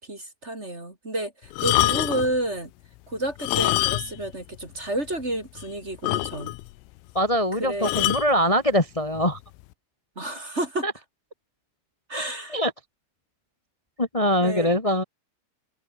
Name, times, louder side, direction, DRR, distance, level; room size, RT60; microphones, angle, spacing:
voice 1, 0.0-2.7 3.1-6.5 7.6-7.9 10.2-10.9 12.1-12.6 14.4-14.7, right 1 dB, 15° right, 3.9 m, -30 dB
sound 1, 1.5-2.4 3.3-4.3 4.6-4.7 5.2-5.3 5.6-5.7 6.0-6.7 7.8-8.3 9.2-9.4, left 19 dB, 85° left, 3.5 m, -25 dB
voice 2, 7.1-9.4 10.8-10.9 12.5-12.7 14.0-15.0, equal, 15° left, 1.3 m, -22 dB
omnidirectional pair, 5.8 m